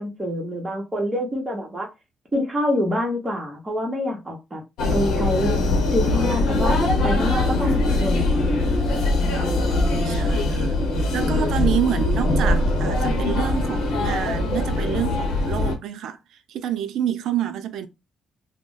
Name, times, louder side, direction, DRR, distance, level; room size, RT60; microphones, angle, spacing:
voice 1, 0.0-1.9 2.3-4.6 4.9-5.6 5.9-8.4, equal, 20° right, 1.0 m, -26 dB
sound 1, 4.8-15.8, left 2 dB, 85° left, 0.8 m, -22 dB
voice 2, 10.0-10.7 11.1-16.2 16.5-17.9, right 10 dB, 80° right, 0.4 m, -28 dB
2.4 x 2.1 x 3.8 m
cardioid pair, 90°, 0 cm